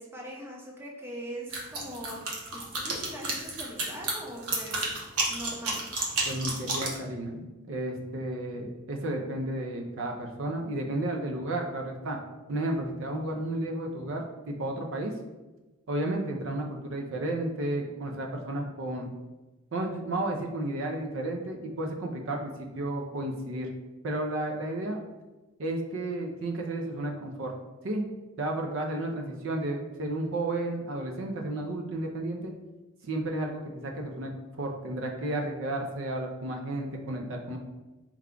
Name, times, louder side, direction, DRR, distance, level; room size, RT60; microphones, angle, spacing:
voice 1, 0.0-2.2 2.5-4.9 5.3-5.8, right 1 dB, 10° right, -3 dB, 0.6 m, -41 dB
sound 1, 1.5-7.0, right 2 dB, 90° right, 0.9 m, -31 dB
voice 2, 6.2-12.2 12.5-15.1 15.9-19.1 19.7-23.7 24.0-25.0 25.6-27.5 27.8-28.0 28.4-32.5 33.0-34.3 34.6-37.6, right 1 dB, 60° right, 2 dB, 0.5 m, -32 dB
4.6 x 2.2 x 3.7 m, 1.1 s
head